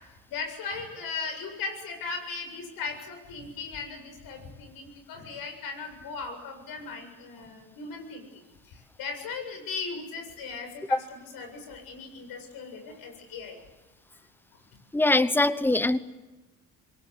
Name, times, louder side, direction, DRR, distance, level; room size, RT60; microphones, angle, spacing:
voice 1, 0.3-13.6, left 4 dB, 80° left, 5 dB, 7.5 m, -38 dB
voice 2, 14.9-16.0, left 2 dB, 5° left, 14 dB, 0.9 m, -22 dB
27.0 x 23.0 x 8.2 m, 1.1 s
cardioid pair, 150°, 35 cm